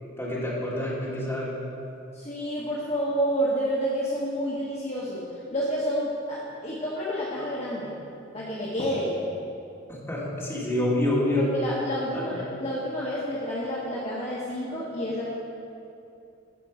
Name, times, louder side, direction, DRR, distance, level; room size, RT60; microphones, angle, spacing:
voice 1, 0.2-1.5 9.9-11.4 12.1-12.4, left 1 dB, 10° left, -7 dB, 2.3 m, -27 dB
voice 2, 2.1-5.2 5.5-7.9 8.3-9.2 11.4-15.3, equal, 35° left, -7 dB, 1.3 m, -29 dB
15.0 x 5.3 x 5.0 m, 2.7 s
head